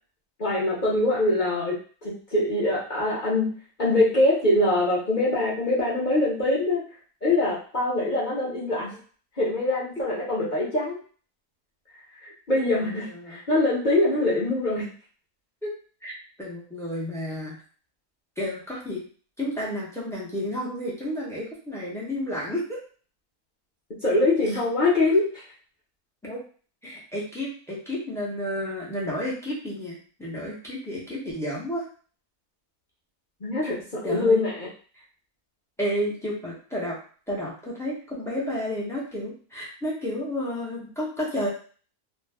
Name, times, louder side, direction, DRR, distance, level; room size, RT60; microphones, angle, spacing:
voice 1, 0.4-3.5 3.8-6.8 7.2-9.0 9.4-11.0 12.2-14.9 24.0-25.3 33.4-34.7, left 2 dB, 40° left, -7 dB, 0.7 m, -23 dB
voice 2, 16.0-17.6 18.4-19.0 19.4-22.8 26.2-26.4 26.8-31.9 34.0-34.4 35.8-37.0 37.3-41.5, equal, 5° left, -6 dB, 0.4 m, -31 dB
2.6 x 2.2 x 3.4 m, 0.41 s
omnidirectional pair, 1.7 m